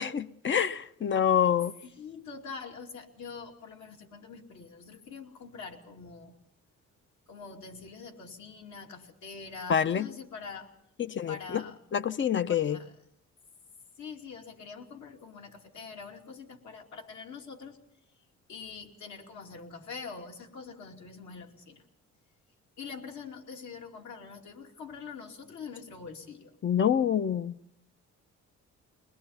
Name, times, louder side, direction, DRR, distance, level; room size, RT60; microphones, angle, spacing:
voice 1, 0.0-1.7 9.7-10.1 11.2-11.6 11.9-12.8 26.6-27.6, left 8 dB, 40° left, 0.7 m, -26 dB
voice 2, 1.8-6.4 7.3-10.7 11.3-11.8 12.5-12.9 14.0-17.8 18.5-21.8 22.8-26.6, left 5 dB, 70° left, 2.9 m, -44 dB
22.5 x 21.0 x 5.8 m
cardioid pair, 90°, 30 cm